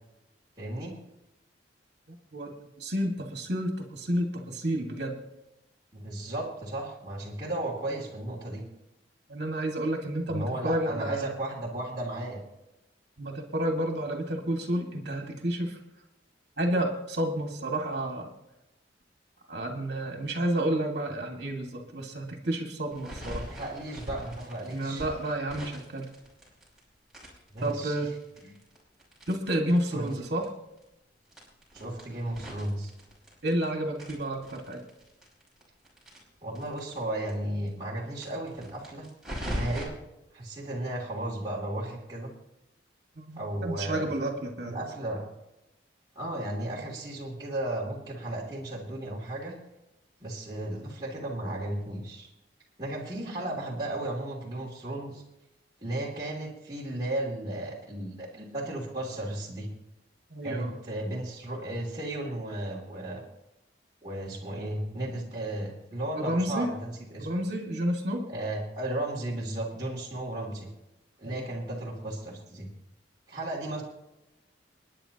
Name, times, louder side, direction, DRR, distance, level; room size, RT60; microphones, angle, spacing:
voice 1, 0.6-0.9 5.9-8.6 10.3-12.4 23.4-25.1 27.5-28.1 28.4-28.5 29.9-30.2 31.7-32.9 36.4-39.1 39.4-39.9 40.3-42.3 43.3-44.1 44.6-45.2 46.1-49.6 50.2-52.3 52.8-55.2 55.8-59.7 60.4-63.2 64.0-67.3 68.3-70.7 71.2-72.7 73.3-73.8, right 1 dB, 20° right, -7 dB, 2.9 m, -34 dB
voice 2, 2.8-5.1 9.3-11.3 13.2-15.8 16.6-18.3 19.5-23.4 24.7-26.1 27.6-28.1 29.3-30.4 33.4-34.8 43.2-44.7 60.3-60.8 66.1-66.7 67.2-68.3 71.2-71.5, right 1 dB, 55° right, 1 dB, 2.2 m, -30 dB
sound 1, 22.9-26.8 27.1-30.1 30.4-30.5 30.8-30.9 31.3-33.6 33.9-37.0 37.3-37.4 37.6-37.7 38.1-39.8, equal, 5° right, 5.4 m, -40 dB
30.0 x 10.0 x 3.0 m, 0.91 s
head